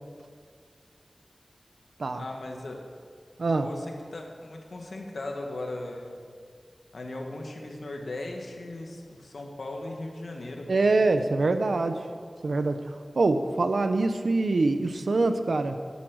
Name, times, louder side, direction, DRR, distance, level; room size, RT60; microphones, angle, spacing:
voice 1, 2.2-3.0 3.5-6.2 6.9-11.5, left 2 dB, 85° left, 2 dB, 1.7 m, -38 dB
voice 2, 10.7-12.0 12.4-12.8 13.1-15.8, right 3 dB, 85° right, 8 dB, 0.8 m, -24 dB
12.0 x 10.5 x 6.3 m, 2.1 s
wide cardioid pair, 60°, 0 cm